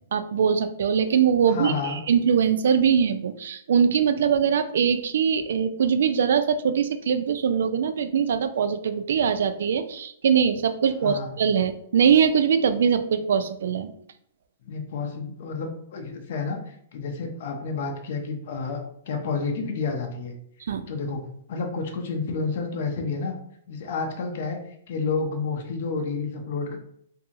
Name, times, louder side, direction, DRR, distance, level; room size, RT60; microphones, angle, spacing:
voice 1, 0.1-13.9 20.7-20.8, right 7 dB, 70° right, 10 dB, 0.3 m, -22 dB
voice 2, 1.5-2.0 11.0-11.3 14.7-18.8 19.1-20.3 20.9-21.2 21.5-23.3 23.7-24.6 24.9-26.8, left 4 dB, 55° left, 2 dB, 0.6 m, -30 dB
2.7 x 2.6 x 2.5 m, 0.68 s
hypercardioid pair, 160°, 0 cm